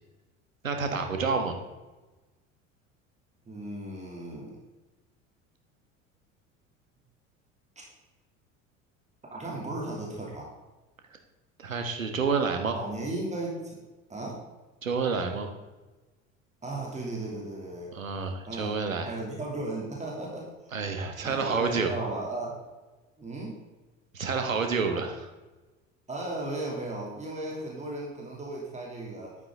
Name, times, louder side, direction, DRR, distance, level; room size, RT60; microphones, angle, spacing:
voice 1, 0.6-1.5 11.6-12.7 14.8-15.5 17.9-19.2 20.7-21.9 24.1-25.3, right 5 dB, 80° right, 5 dB, 1.4 m, -29 dB
voice 2, 3.5-4.6 9.3-10.5 12.7-13.8 14.1-14.4 16.6-17.9 18.5-18.7 19.0-20.8 21.2-22.6 23.2-23.6 26.1-29.4, right 2 dB, 15° right, -3 dB, 2.9 m, -36 dB
11.0 x 9.3 x 3.8 m, 1.2 s
figure-of-eight pair, 65°, 39 cm